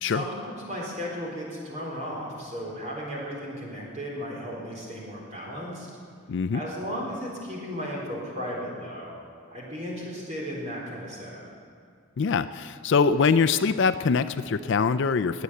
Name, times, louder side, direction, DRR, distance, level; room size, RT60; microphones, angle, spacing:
voice 1, 0.0-5.9 6.5-9.2 9.5-11.5, equal, 30° right, -3 dB, 4.0 m, -35 dB
voice 2, 6.3-6.6 12.2-15.4, left 5 dB, 55° left, 11 dB, 0.4 m, -23 dB
21.0 x 8.3 x 7.7 m, 2.2 s
head